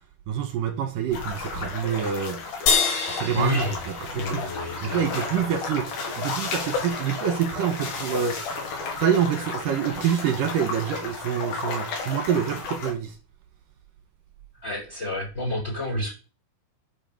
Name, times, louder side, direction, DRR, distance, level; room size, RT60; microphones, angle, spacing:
voice 1, 0.3-2.4 3.1-4.4 4.8-5.9 6.2-8.4 9.0-13.2, right 8 dB, 65° right, 2.5 m, -26 dB
sound 1, 1.1-12.9, left 4 dB, 60° left, 4.1 m, -33 dB
sound 2, 2.7-5.2, left 5 dB, 75° left, 4.9 m, -27 dB
voice 2, 3.3-3.8 4.1-5.3 14.6-16.1, left 1 dB, 15° left, 5.3 m, -29 dB
sound 3, 4.1-9.9, left 3 dB, 35° left, 2.6 m, -40 dB
9.7 x 7.0 x 7.1 m
omnidirectional pair, 4.9 m